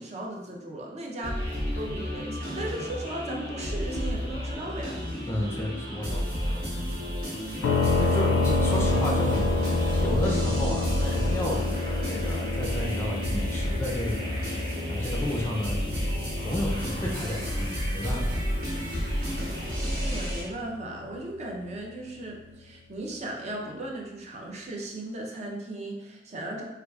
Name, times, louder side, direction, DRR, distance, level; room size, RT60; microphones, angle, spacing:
voice 1, 0.0-5.0 8.1-8.2 20.0-26.6, right 1 dB, 40° right, -1 dB, 0.5 m, -37 dB
sound 1, 1.2-20.4, equal, 75° right, 1.4 m, -31 dB
voice 2, 5.3-6.9 7.6-14.5 14.9-18.4, left 1 dB, 15° left, -2 dB, 0.4 m, -33 dB
sound 2, 7.6-21.3, left 3 dB, 85° left, 0.3 m, -29 dB
4.5 x 2.3 x 2.3 m, 1.0 s
head